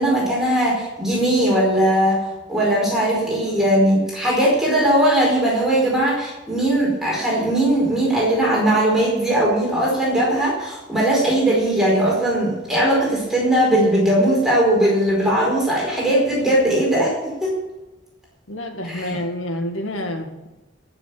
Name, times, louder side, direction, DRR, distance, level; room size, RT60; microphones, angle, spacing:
voice 1, 0.0-2.2 2.5-17.1 17.4-17.5 18.9-19.2, right 1 dB, ahead, -4 dB, 4.8 m, -19 dB
voice 2, 18.5-20.6, left 1 dB, 85° left, 5 dB, 2.1 m, -29 dB
14.0 x 6.9 x 9.4 m, 1.1 s
head